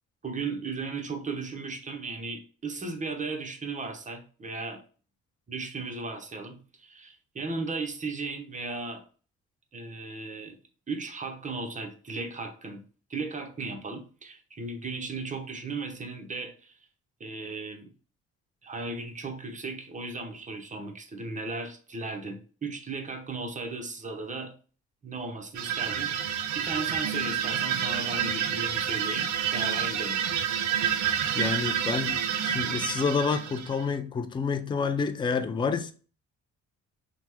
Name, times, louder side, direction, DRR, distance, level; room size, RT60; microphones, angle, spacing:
voice 1, 0.2-4.8 5.5-9.0 9.7-10.6 10.9-12.8 13.1-16.8 17.2-17.9 18.6-24.6 25.0-30.2, right 3 dB, 25° right, 0.7 m, -36 dB
sound 1, 25.5-34.0, right 8 dB, 80° right, 0.5 m, -29 dB
voice 2, 31.3-35.9, left 5 dB, 15° left, 0.3 m, -29 dB
2.9 x 2.1 x 3.4 m
cardioid pair, 90°, 30 cm